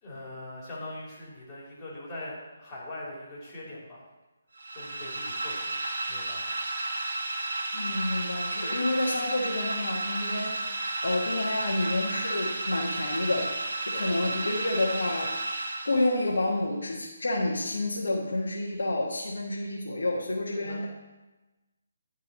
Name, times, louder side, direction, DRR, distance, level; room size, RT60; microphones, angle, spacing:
voice 1, 0.0-4.0 4.7-5.8 6.1-6.5 20.6-20.8, left 1 dB, 20° left, -6 dB, 2.7 m, -41 dB
sound 1, 4.6-16.4, right 2 dB, 70° right, 1.4 m, -33 dB
voice 2, 7.7-10.7 11.0-13.5 13.8-15.4 15.8-20.8, left 2 dB, 75° left, -4 dB, 1.3 m, -29 dB
11.0 x 4.6 x 4.0 m, 1.1 s
figure-of-eight pair, 150°, 0 cm